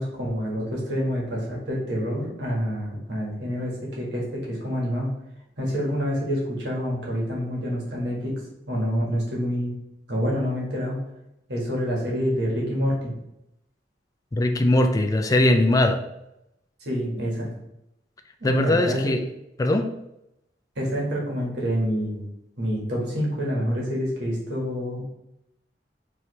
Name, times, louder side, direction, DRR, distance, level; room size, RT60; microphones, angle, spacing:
voice 1, 0.0-5.1 5.6-8.3 8.7-9.7 10.1-11.0 11.5-13.1 16.8-17.5 18.4-19.1 20.7-22.3 22.6-25.0, equal, 65° right, -3 dB, 1.5 m, -27 dB
voice 2, 14.4-16.0 18.4-19.2 19.6-19.9, left 1 dB, 20° left, 6 dB, 0.3 m, -20 dB
4.8 x 2.8 x 3.1 m, 0.85 s
head